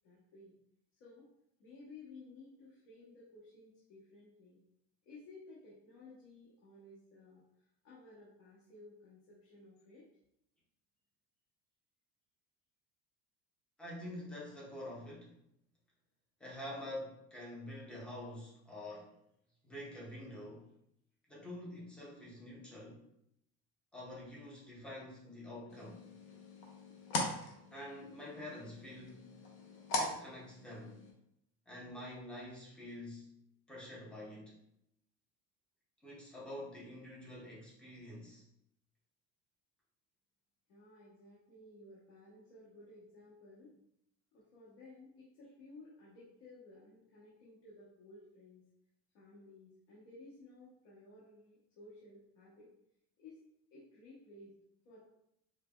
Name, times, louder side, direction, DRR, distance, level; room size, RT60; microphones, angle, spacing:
voice 1, 0.0-0.6 1.0-1.3 1.6-4.6 5.0-7.4 7.8-10.1 40.7-43.8 44.3-48.6 49.1-52.7 53.2-53.4 53.7-54.5 54.8-55.0, left 2 dB, 70° left, -7 dB, 1.1 m, -56 dB
voice 2, 13.8-15.3 16.4-19.2 19.6-20.7 21.3-23.1 23.9-26.1 27.7-29.3 30.0-31.1 31.7-33.3 33.7-34.6 36.0-38.4, left 1 dB, 5° left, -5 dB, 0.5 m, -47 dB
sound 1, 25.7-31.1, left 2 dB, 50° left, 0.7 m, -41 dB
4.9 x 2.1 x 2.2 m, 0.77 s
cardioid pair, 180°, 36 cm